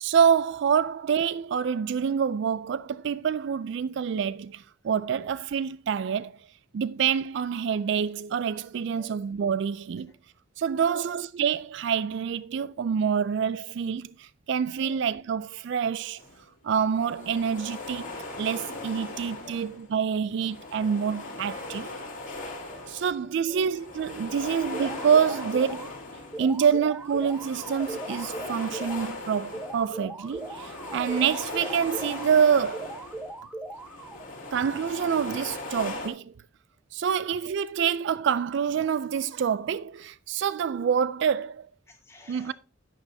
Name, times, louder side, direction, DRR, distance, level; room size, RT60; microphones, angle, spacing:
voice 1, 0.0-6.3 6.7-10.1 10.6-16.2 16.6-18.1 18.4-21.9 22.9-25.9 26.4-33.0 34.5-36.3 36.9-41.7 42.3-42.5, right 7 dB, 60° right, 0.3 m, -26 dB
voice 2, 10.8-11.1 14.8-15.0 19.4-19.6 20.1-20.2 21.3-21.4 22.3-23.1 23.4-23.6 26.6-26.7 29.9-30.4 34.4-34.5 37.1-37.2 41.9-42.5, left 2 dB, 15° left, 2.5 m, -53 dB
sound 1, 16.2-16.4 16.9-19.9 20.3-23.3 23.6-26.6 27.0-33.4 33.7-36.1, left 2 dB, 40° left, 2.7 m, -39 dB
sound 2, 24.7-25.9 26.3-29.1 29.5-32.3 32.7-34.3, right 2 dB, 5° right, 1.0 m, -39 dB
10.5 x 9.1 x 2.7 m
head